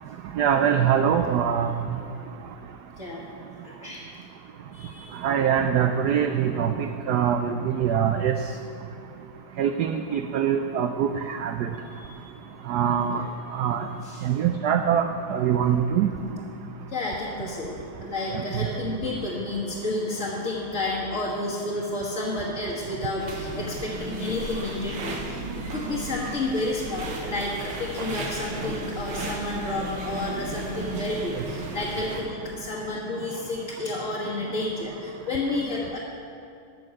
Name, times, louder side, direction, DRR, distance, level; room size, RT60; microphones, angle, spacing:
voice 1, 0.3-1.8 5.2-8.4 9.6-11.7 12.7-13.3 13.5-13.9 14.2-16.1 18.3-18.4, right 8 dB, 90° right, 7 dB, 0.8 m, -23 dB
voice 2, 3.6-4.0 4.7-5.2 11.8-12.2 13.1-13.2 13.6-13.7 14.0-14.3 16.9-36.0, left 2 dB, 40° left, -6 dB, 1.5 m, -31 dB
sound 1, 23.2-32.2, right 2 dB, 65° right, 1.8 m, -35 dB
12.0 x 6.4 x 7.6 m, 2.5 s
omnidirectional pair, 2.3 m